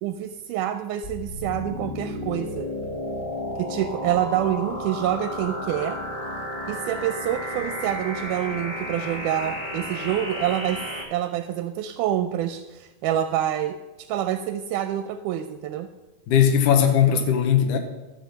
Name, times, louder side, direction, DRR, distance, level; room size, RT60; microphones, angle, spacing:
voice 1, 0.0-2.7 3.6-6.0 6.7-10.8 11.1-15.9, right 11 dB, 85° right, 9 dB, 2.0 m, -27 dB
sound 1, 1.0-11.0, left 1 dB, 55° left, 0.5 m, -32 dB
voice 2, 16.3-17.8, left 8 dB, 75° left, 5 dB, 2.5 m, -18 dB
12.5 x 5.8 x 7.0 m, 1.1 s
omnidirectional pair, 3.7 m